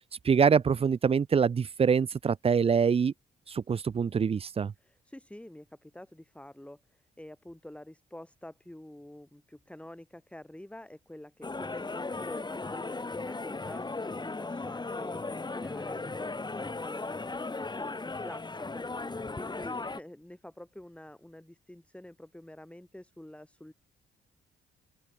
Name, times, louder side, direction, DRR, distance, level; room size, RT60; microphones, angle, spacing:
voice 1, 0.2-3.1 3.5-4.7, right 6 dB, 30° right, 0.5 m, -25 dB
voice 2, 4.8-23.7, left 1 dB, 5° left, 7.2 m, -48 dB
sound 1, 11.4-20.0, left 3 dB, 20° left, 7.8 m, -36 dB
open air
cardioid pair, 90°, 20 cm